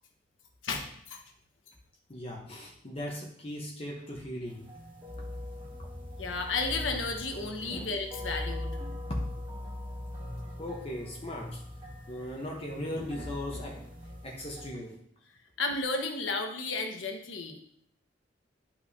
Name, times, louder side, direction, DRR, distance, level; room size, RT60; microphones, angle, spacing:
voice 1, 0.6-1.2 6.2-8.7 15.6-17.6, left 3 dB, 90° left, 4 dB, 1.2 m, -33 dB
voice 2, 2.1-4.7 5.2-5.7 6.1-6.2 7.6-7.9 9.1-9.2 10.6-15.0, left 1 dB, 30° left, -1 dB, 0.9 m, -38 dB
sound 1, 4.5-14.7, left 1 dB, 25° right, 1.7 m, -41 dB
11.5 x 5.6 x 2.7 m, 0.66 s
head